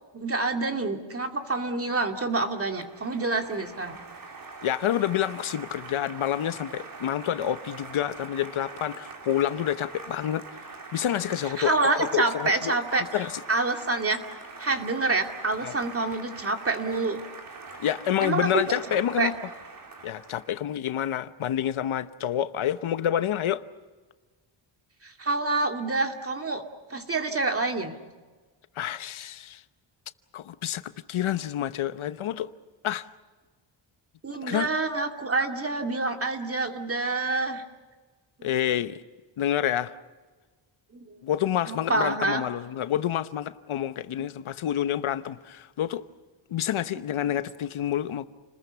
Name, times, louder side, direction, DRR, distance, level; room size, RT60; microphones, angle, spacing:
voice 1, 0.1-4.0 11.6-14.2 14.6-17.2 18.2-18.6 19.2-19.3 25.0-26.6 26.9-27.9 34.2-37.6 38.4-38.5 40.9-41.1 41.7-42.4 44.2-44.3, right 3 dB, 30° right, 2.4 m, -27 dB
Applause, 1.8-20.7, right 4 dB, 45° right, 3.3 m, -43 dB
voice 2, 4.6-10.5 10.9-11.7 12.0-12.8 13.1-13.4 15.6-15.7 17.8-19.3 20.0-23.6 28.8-29.6 30.3-32.5 32.8-33.1 34.4-34.7 38.4-39.0 39.4-40.0 41.2-46.0 46.5-48.3, left 11 dB, 75° left, 1.1 m, -28 dB
30.0 x 20.5 x 7.0 m
wide cardioid pair, 140°, 49 cm